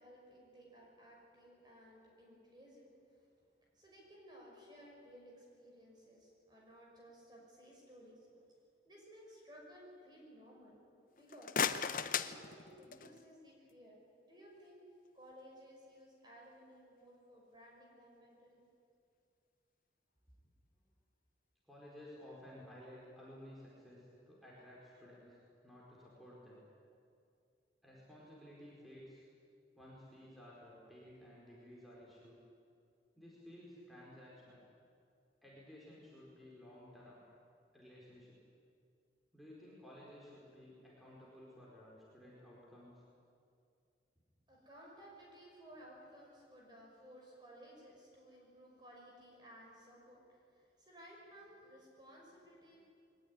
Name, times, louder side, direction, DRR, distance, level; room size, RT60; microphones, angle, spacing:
voice 1, 0.0-3.3 3.6-8.4 8.9-10.8 11.2-11.7 12.1-14.0 14.2-14.8 15.1-18.6 44.5-52.9, equal, 25° right, -2 dB, 6.0 m, -58 dB
sound 1, 11.2-13.2, left 6 dB, 50° left, 0.7 m, -37 dB
voice 2, 21.6-26.6 27.8-29.2 29.8-32.4 33.1-34.6 35.4-37.2 37.7-38.4 39.3-43.0, left 1 dB, ahead, -6 dB, 4.6 m, -55 dB
22.0 x 19.0 x 9.8 m, 2.4 s
head